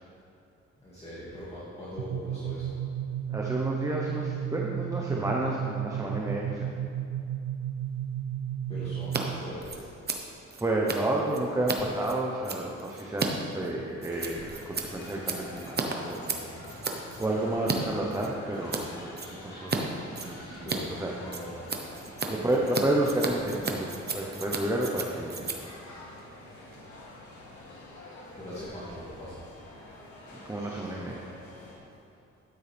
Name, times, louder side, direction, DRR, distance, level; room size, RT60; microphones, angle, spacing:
voice 1, 0.8-2.8 8.7-9.9 20.6-21.7 22.2-22.5 28.4-29.4, left 1 dB, 20° left, -10 dB, 2.3 m, -41 dB
sound 1, 2.0-9.5, right 10 dB, 75° right, 0.6 m, -33 dB
voice 2, 3.3-6.7 10.6-13.3 13.5-15.8 16.0-16.4 16.8-19.8 20.2-21.1 22.3-25.7 30.3-31.2, right 1 dB, 10° right, -2 dB, 0.9 m, -31 dB
Scissors, 9.0-9.2 9.5-17.8 18.1-18.8 19.1-19.8 20.1-26.9, right 4 dB, 35° right, 1.0 m, -35 dB
sound 2, 14.0-31.8, left 1 dB, 85° left, 2.7 m, -47 dB
12.5 x 9.4 x 3.5 m, 2.7 s
cardioid pair, 125°, 29 cm